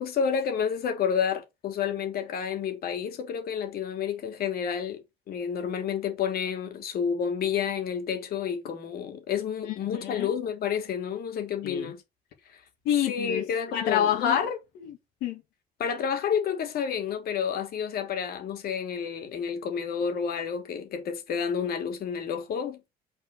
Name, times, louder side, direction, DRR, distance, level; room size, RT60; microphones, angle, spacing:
voice 1, 0.0-12.0 12.5-12.6 13.0-14.4 15.8-22.9, left 7 dB, 65° left, 2.7 m, -30 dB
voice 2, 10.0-10.3 11.6-11.9 12.9-13.4 13.7-15.4, left 9 dB, 85° left, 2.2 m, -27 dB
6.4 x 4.5 x 6.7 m
cardioid pair, 110°, 17 cm